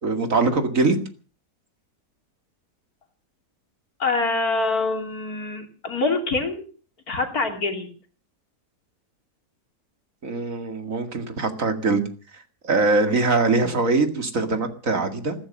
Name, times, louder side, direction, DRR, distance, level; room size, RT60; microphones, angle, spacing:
voice 1, 0.0-1.0 10.2-12.0 12.6-15.4, right 3 dB, 60° right, 7 dB, 2.5 m, -22 dB
voice 2, 4.0-6.6 7.1-7.9, left 3 dB, 75° left, 5 dB, 3.4 m, -25 dB
15.5 x 14.0 x 6.4 m, 0.39 s
omnidirectional pair, 1.6 m